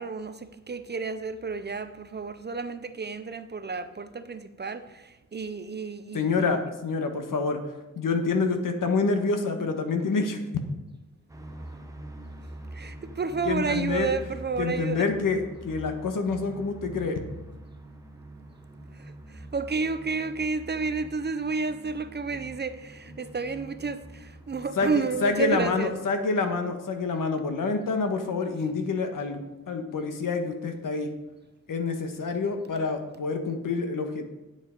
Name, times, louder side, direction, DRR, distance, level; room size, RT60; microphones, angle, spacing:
voice 1, 0.0-6.5 12.7-15.1 18.9-25.9, right 4 dB, 30° right, 0.5 m, -31 dB
voice 2, 6.1-7.6 7.9-10.4 13.4-14.1 14.6-17.2 24.8-31.1 31.7-34.2, left 4 dB, 70° left, 1.5 m, -27 dB
sound 1, 11.3-25.9, right 1 dB, 10° right, 0.9 m, -44 dB
9.5 x 7.9 x 5.2 m
wide cardioid pair, 155°, 34 cm